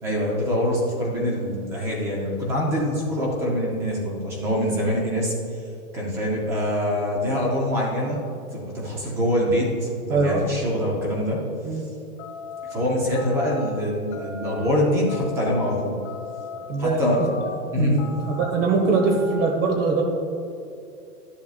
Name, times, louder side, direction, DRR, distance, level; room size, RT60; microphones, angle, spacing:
voice 1, 0.0-5.3 5.9-8.2 8.5-11.4 12.7-16.0 16.8-17.2 17.7-18.0, equal, 5° right, -2 dB, 0.4 m, -24 dB
voice 2, 10.1-10.4 11.6-11.9 16.7-17.0 17.8-20.0, right 4 dB, 55° right, 1 dB, 1.4 m, -22 dB
sound 1, 12.2-12.7 13.1-13.7 14.1-14.7 15.1-15.6 16.0-16.6 17.0-17.5 18.0-18.5 18.9-19.5, left 5 dB, 30° left, 0.9 m, -38 dB
12.0 x 7.1 x 2.4 m, 2.6 s
hypercardioid pair, 145°, 45 cm